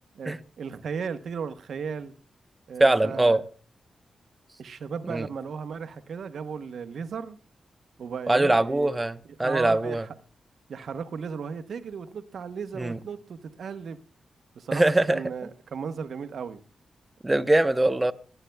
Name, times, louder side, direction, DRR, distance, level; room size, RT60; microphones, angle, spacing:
voice 1, 0.1-2.1 2.7-3.4 4.6-7.4 8.0-8.9 9.4-10.1 10.7-14.0 14.5-16.6, right 6 dB, 75° right, 0.9 m, -35 dB
voice 2, 2.8-3.4 5.1-5.3 8.3-10.0 12.8-13.0 14.7-15.2 17.2-18.1, right 2 dB, 20° right, 0.7 m, -22 dB
26.0 x 8.9 x 2.2 m
cardioid pair, 70°, 0 cm